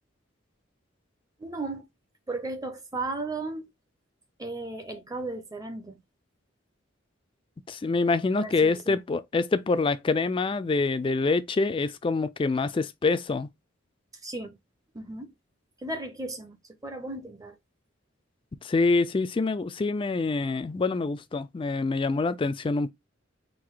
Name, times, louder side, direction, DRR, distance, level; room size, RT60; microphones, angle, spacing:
voice 1, 1.4-1.9 2.3-3.7 4.4-6.0 8.4-9.0 14.2-14.6 14.9-15.3 15.8-16.6 16.8-17.5, right 2 dB, 20° right, 0.6 m, -35 dB
voice 2, 7.7-13.5 18.6-22.9, left 3 dB, 25° left, 0.3 m, -26 dB
3.9 x 2.6 x 4.6 m
head